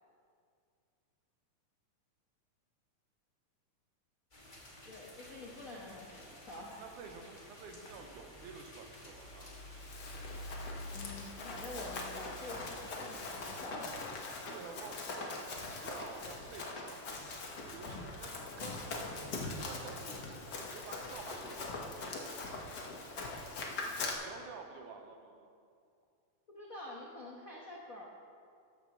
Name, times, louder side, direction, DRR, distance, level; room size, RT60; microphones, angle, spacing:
sound 1, 4.3-13.6, equal, 20° left, 1.4 m, -50 dB
voice 1, 4.8-6.8 10.9-14.0 26.5-28.0, left 2 dB, 80° left, -3 dB, 0.7 m, -47 dB
voice 2, 6.8-9.6 14.5-17.0 17.6-19.2 19.7-22.4 23.8-25.5, right 5 dB, 85° right, 4 dB, 2.4 m, -50 dB
Run, 9.6-24.1, left 3 dB, 60° left, 1.1 m, -42 dB
14.0 x 11.5 x 3.0 m, 2.3 s
omnidirectional pair, 3.5 m